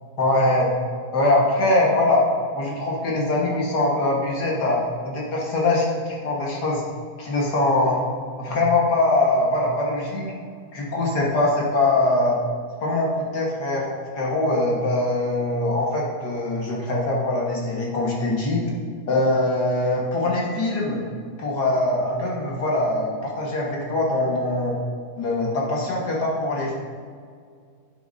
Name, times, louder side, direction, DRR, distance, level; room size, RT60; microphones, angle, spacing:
voice 1, 0.2-0.7 1.1-2.2 2.5-6.8 7.2-8.0 8.4-10.3 10.7-12.4 12.8-18.6 19.1-21.0 21.4-24.8 25.2-26.7, left 2 dB, 85° left, -3 dB, 2.1 m, -22 dB
9.6 x 6.5 x 2.7 m, 2.1 s
omnidirectional pair, 1.7 m